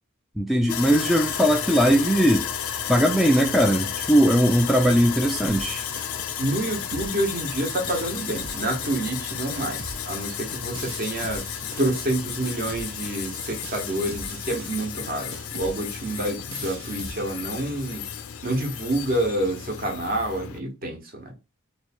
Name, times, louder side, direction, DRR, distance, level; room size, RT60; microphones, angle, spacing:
voice 1, 0.4-2.5 2.9-5.8, equal, ahead, 0.3 m, -19 dB
Sawing, 0.7-20.6, left 9 dB, 75° left, 0.4 m, -33 dB
sound 1, 5.5-17.1, right 4 dB, 60° right, 0.6 m, -42 dB
voice 2, 6.4-11.4 11.8-18.0 18.4-21.3, right 1 dB, 40° right, 0.9 m, -28 dB
3.1 x 2.3 x 4.2 m
head